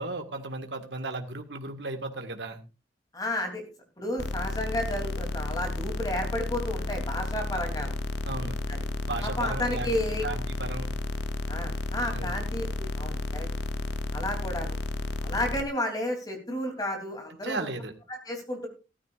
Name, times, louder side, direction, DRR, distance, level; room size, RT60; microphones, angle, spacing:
voice 1, 0.0-2.6 8.2-8.6 9.0-9.9 10.2-10.9 12.1-12.4 17.4-17.9, right 2 dB, 70° right, 5 dB, 1.8 m, -35 dB
voice 2, 3.1-3.7 4.0-7.9 8.7-8.8 9.2-10.3 11.5-13.5 14.1-14.8 15.2-17.7 18.1-18.7, left 1 dB, 20° left, 3 dB, 3.2 m, -32 dB
sound 1, 4.2-15.6, left 2 dB, 65° left, 0.8 m, -32 dB
15.5 x 13.5 x 2.5 m, 0.30 s
head